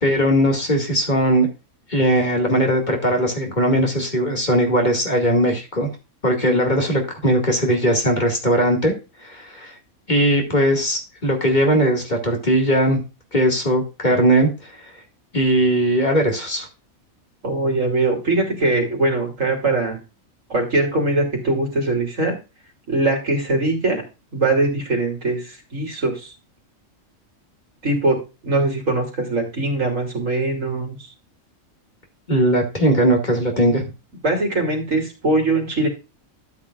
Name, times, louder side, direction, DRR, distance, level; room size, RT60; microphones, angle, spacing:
voice 1, 0.0-1.5 1.9-5.9 6.2-8.9 9.2-9.7 10.1-13.0 13.3-14.9 15.3-16.7 32.3-33.8, equal, 35° left, 2 dB, 2.3 m, -19 dB
voice 2, 17.4-20.0 20.5-22.3 22.9-24.0 24.3-26.3 27.8-28.2 28.4-30.9 34.2-35.9, right 2 dB, 65° right, 0 dB, 3.4 m, -21 dB
12.5 x 7.3 x 2.5 m, 0.28 s
omnidirectional pair, 1.4 m